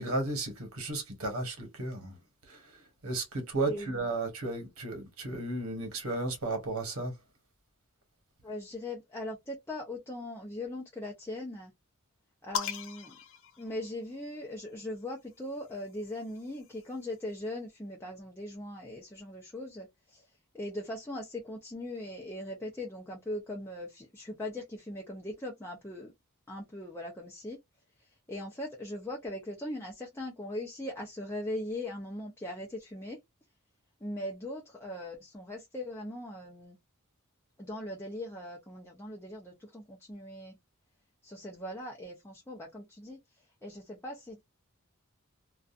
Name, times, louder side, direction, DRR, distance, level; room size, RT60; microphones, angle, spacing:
voice 1, 0.0-2.1 3.0-7.1, right 2 dB, 75° right, 1.2 m, -34 dB
voice 2, 3.6-3.9 8.4-11.7 12.4-13.2 13.6-20.2 20.5-26.1 26.5-27.6 28.3-33.2 34.0-36.8 37.6-40.6 41.2-43.2 43.6-44.4, left 1 dB, 10° left, 0.6 m, -40 dB
sound 1, 12.5-14.3 15.5-17.1, left 8 dB, 65° left, 0.5 m, -40 dB
2.5 x 2.4 x 2.4 m
head